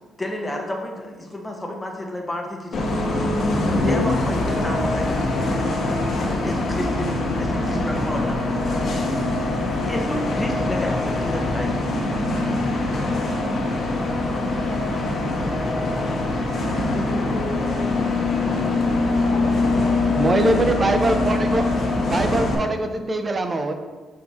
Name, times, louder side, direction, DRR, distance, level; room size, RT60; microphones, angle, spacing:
voice 1, 0.2-2.8 3.7-5.1 6.2-8.8 9.9-11.9 13.9-17.3, left 1 dB, 15° left, 1 dB, 1.1 m, -32 dB
Bus, 2.7-22.5, left 2 dB, 50° left, 1.3 m, -23 dB
voice 2, 16.8-17.8 18.4-20.7, left 2 dB, 80° left, -3 dB, 1.3 m, -35 dB
voice 3, 20.1-21.7 22.0-23.7, right 2 dB, 30° right, 7 dB, 0.7 m, -22 dB
6.3 x 4.4 x 4.2 m, 1.3 s
cardioid pair, 90°, 0 cm